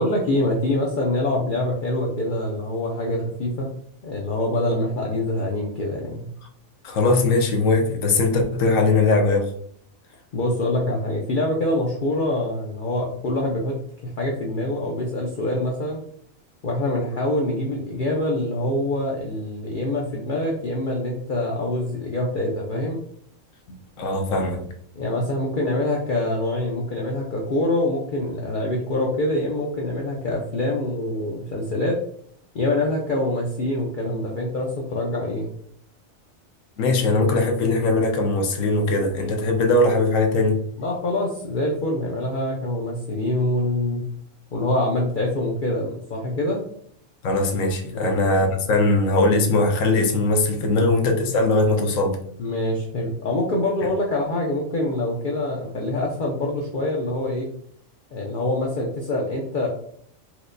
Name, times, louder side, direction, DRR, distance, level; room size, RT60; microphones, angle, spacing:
voice 1, 0.0-3.7 4.0-6.3 10.3-13.8 14.0-16.0 16.6-23.0 24.9-32.0 32.5-35.5 40.8-44.0 44.5-46.6 47.9-48.1 50.8-50.9 52.4-57.5 58.1-59.7, left 1 dB, 60° left, 0.5 m, -25 dB
voice 2, 6.8-9.5 24.0-24.7 36.8-40.6 47.2-52.2, left 2 dB, 80° left, 1.0 m, -20 dB
4.4 x 2.1 x 2.5 m
omnidirectional pair, 1.4 m